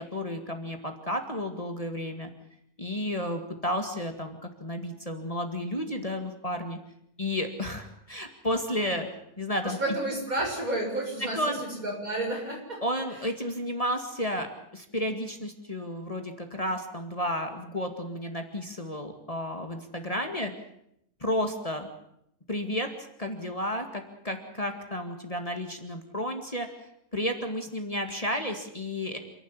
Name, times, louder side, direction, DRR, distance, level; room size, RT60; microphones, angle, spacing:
voice 1, 0.0-2.3 2.8-6.8 7.2-9.1 9.4-9.8 11.3-11.6 12.8-20.5 21.2-21.9 22.5-26.7 27.1-29.2, equal, 25° left, 4 dB, 2.2 m, -32 dB
voice 2, 9.6-12.8, right 1 dB, 70° right, -1 dB, 7.4 m, -31 dB
28.0 x 11.5 x 9.8 m, 0.76 s
omnidirectional pair, 1.5 m